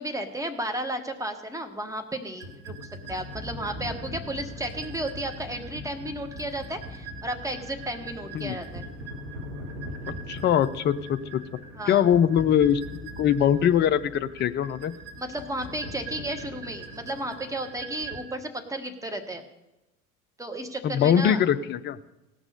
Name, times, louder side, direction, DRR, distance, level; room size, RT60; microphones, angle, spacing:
voice 1, 0.0-8.9 11.7-12.1 15.1-19.4 20.4-21.4, right 1 dB, 10° right, 6 dB, 1.3 m, -33 dB
sound 1, 2.4-18.2, right 1 dB, 35° right, 2.0 m, -40 dB
voice 2, 10.3-11.2 11.9-14.9 20.8-22.0, left 9 dB, 25° left, 12 dB, 0.5 m, -22 dB
17.5 x 6.1 x 6.6 m, 0.98 s
figure-of-eight pair, 70°, 42 cm